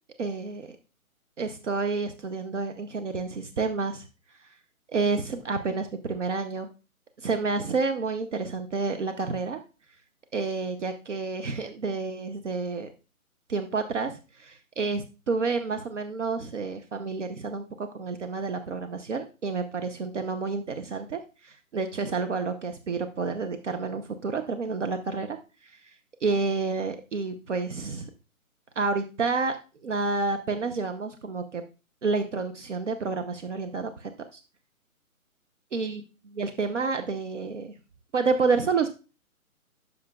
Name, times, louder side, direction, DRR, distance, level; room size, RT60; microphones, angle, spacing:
voice 1, 0.2-0.7 1.4-4.1 4.9-6.7 7.2-9.6 10.3-12.9 13.5-25.9 26.2-28.1 28.8-29.6 29.8-31.6 32.0-34.4 35.7-36.0 36.3-37.7 38.1-38.9, right 4 dB, 55° right, 7 dB, 0.9 m, -29 dB
12.0 x 6.5 x 2.3 m, 0.32 s
hypercardioid pair, 160°, 43 cm